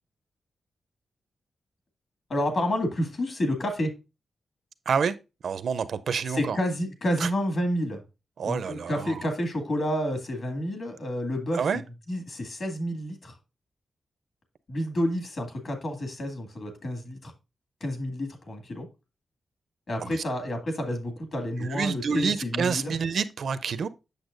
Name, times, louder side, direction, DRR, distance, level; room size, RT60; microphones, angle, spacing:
voice 1, 2.3-3.9 6.3-8.0 8.4-11.7 12.1-13.4 14.7-17.3 17.8-18.9 19.9-22.9, equal, 45° left, 2.0 m, -29 dB
voice 2, 5.4-6.6 7.2-7.3 8.4-9.2 11.5-11.8 20.0-20.2 21.6-23.9, right 6 dB, 65° right, 0.5 m, -28 dB
8.0 x 6.8 x 2.5 m
wide cardioid pair, 170°, 0 cm